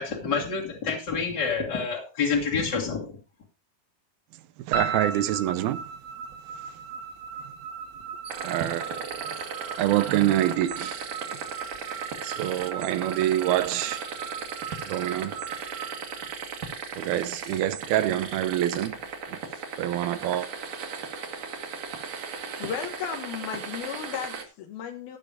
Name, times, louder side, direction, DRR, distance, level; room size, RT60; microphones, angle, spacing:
voice 1, 0.0-3.2, left 5 dB, 35° left, 2.2 m, -28 dB
sound 1, 4.7-17.0, right 6 dB, 40° right, 2.0 m, -37 dB
voice 2, 4.7-5.8 8.4-8.9 9.8-11.0 12.2-14.0 14.9-15.3 17.0-18.9 19.3-19.4 19.8-20.5, right 13 dB, 90° right, 2.8 m, -26 dB
sound 2, 8.3-24.5, right 5 dB, 60° right, 3.3 m, -37 dB
voice 3, 22.6-25.2, left 8 dB, 80° left, 3.1 m, -35 dB
15.5 x 6.7 x 5.0 m
omnidirectional pair, 4.2 m